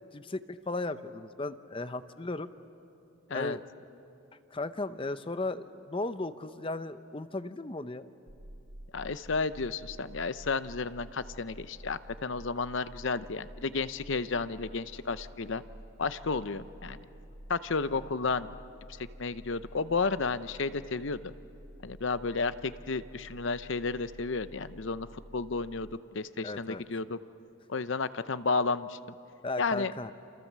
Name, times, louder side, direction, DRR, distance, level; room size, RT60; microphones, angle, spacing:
voice 1, 0.1-2.5 3.3-3.6 4.5-8.1 26.4-26.8 29.4-30.1, left 2 dB, 25° left, 12 dB, 0.7 m, -36 dB
sound 1, 8.3-26.0, equal, 45° right, 1.2 m, -50 dB
voice 2, 8.9-15.6 16.0-17.0 17.5-18.5 19.0-21.3 21.8-27.2 27.7-29.0 29.6-29.9, left 4 dB, 60° left, 14 dB, 0.7 m, -32 dB
29.0 x 27.5 x 7.5 m, 2.9 s
head